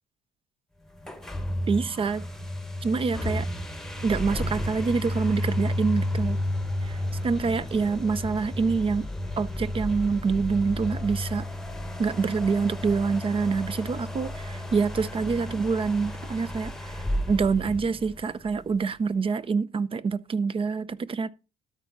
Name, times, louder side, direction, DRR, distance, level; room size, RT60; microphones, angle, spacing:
sound 1, 1.0-18.5, left 1 dB, 5° left, 1.1 m, -32 dB
voice 1, 1.7-2.2 2.8-3.5 4.0-6.4 6.8-7.0 7.2-9.0 9.4-11.4 12.0-16.9 17.3-21.3, right 5 dB, 30° right, 0.7 m, -26 dB
13.0 x 4.8 x 4.0 m
cardioid pair, 110°, 17 cm